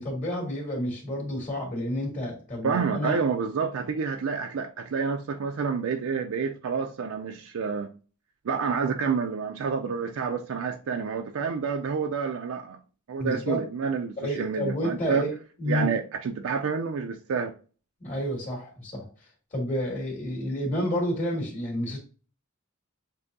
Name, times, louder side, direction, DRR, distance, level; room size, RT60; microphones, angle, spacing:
voice 1, 0.0-3.2 13.2-13.6 14.2-15.9 18.0-19.1 19.5-22.0, left 1 dB, 40° left, 2.1 m, -30 dB
voice 2, 2.6-7.9 8.4-12.8 13.1-15.3 15.7-17.5, right 5 dB, 70° right, 0.4 m, -29 dB
7.5 x 2.7 x 2.6 m
head